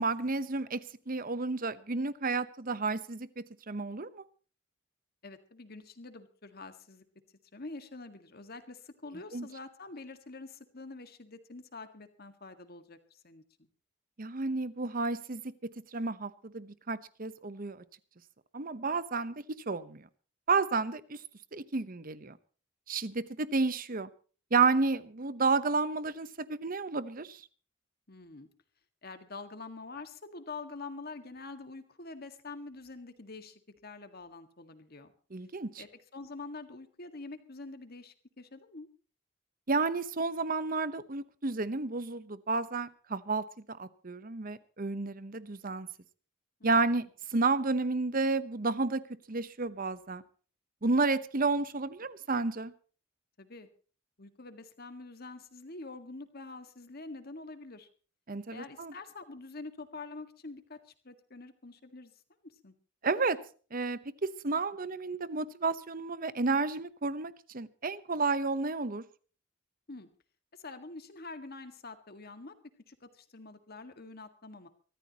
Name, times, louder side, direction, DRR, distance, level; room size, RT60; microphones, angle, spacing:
voice 1, 0.0-4.2 9.3-9.5 14.2-15.4 15.9-17.8 18.5-20.1 20.5-21.2 21.5-22.4 22.9-24.1 24.5-27.4 35.3-35.8 39.7-45.9 46.6-47.1 47.3-49.0 49.3-50.2 50.8-52.7 58.3-58.9 63.0-63.4 63.7-64.0 64.4-69.0, right 3 dB, 45° right, 0.9 m, -31 dB
voice 2, 5.2-7.0 7.5-13.7 28.1-28.5 29.0-35.1 35.8-38.9 46.6-47.1 53.4-53.7 54.2-57.9 58.5-62.1 62.4-62.7 69.9-70.1 70.5-72.6 72.9-74.7, left 3 dB, 50° left, 1.8 m, -46 dB
24.0 x 14.0 x 3.0 m
head